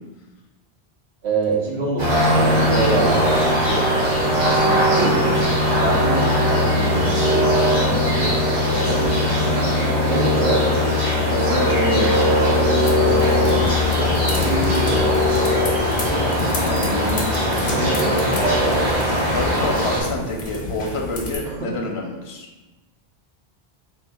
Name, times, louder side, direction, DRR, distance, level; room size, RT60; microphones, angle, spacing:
voice 1, 1.2-3.3 5.0-5.4 5.8-8.4 10.0-10.7 12.9-15.5 17.7-17.8 18.1-18.2 21.4-21.7, right 3 dB, 85° right, -3 dB, 1.2 m, -26 dB
sound 1, 2.0-20.0, left 1 dB, 40° right, 1.3 m, -19 dB
voice 2, 3.7-4.0 4.4-6.1 8.5-9.1 11.3-12.2 14.0-14.3 15.9-18.2 19.3-22.5, left 2 dB, 80° left, 1 dB, 1.0 m, -29 dB
sound 2, 12.8-21.4, left 2 dB, 55° left, 1.1 m, -32 dB
4.5 x 4.3 x 2.3 m, 1.1 s
omnidirectional pair, 1.1 m